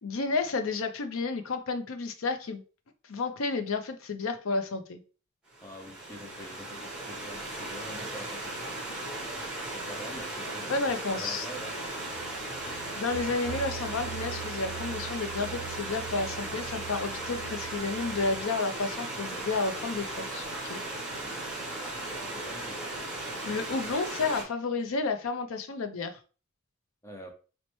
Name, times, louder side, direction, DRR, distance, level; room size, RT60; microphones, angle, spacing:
voice 1, 0.0-2.6 3.1-5.0 10.7-11.5 13.0-20.8 23.4-26.2, left 3 dB, 65° left, 8 dB, 0.5 m, -31 dB
Stream / Liquid, 5.5-24.4, right 2 dB, 5° right, 0.8 m, -37 dB
voice 2, 5.6-9.0 9.6-10.8 11.1-12.2 21.2-22.9 27.0-27.3, equal, 10° left, 2 dB, 0.5 m, -46 dB
sound 1, 12.1-18.4, right 10 dB, 50° right, 0.9 m, -43 dB
4.1 x 2.1 x 3.0 m, 0.35 s
head